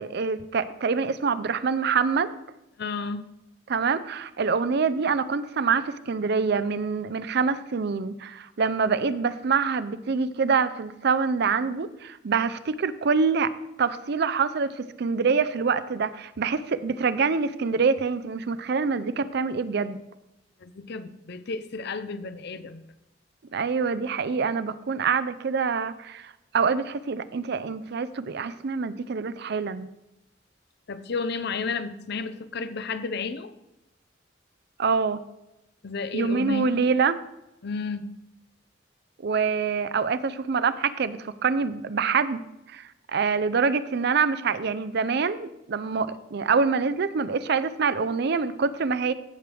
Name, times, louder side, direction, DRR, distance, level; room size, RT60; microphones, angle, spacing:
voice 1, 0.0-2.3 3.7-13.5 13.8-20.0 23.5-29.9 34.8-35.2 36.1-37.2 39.2-42.4 42.7-49.1, right 5 dB, 60° right, 14 dB, 0.5 m, -25 dB
voice 2, 2.8-3.3 20.6-22.8 30.9-33.5 35.8-36.7 37.6-38.1, left 4 dB, 60° left, 12 dB, 0.6 m, -32 dB
16.0 x 6.2 x 3.4 m, 0.90 s
head